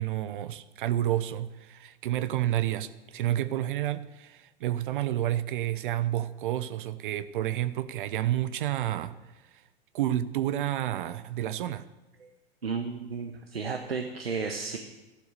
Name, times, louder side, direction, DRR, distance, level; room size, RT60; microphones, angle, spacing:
voice 1, 0.0-9.1 9.9-11.9, right 13 dB, 55° right, 14 dB, 0.8 m, -30 dB
voice 2, 12.6-14.8, right 5 dB, 80° right, 4 dB, 1.2 m, -33 dB
13.5 x 12.0 x 6.7 m, 1.1 s
figure-of-eight pair, 90°, 30 cm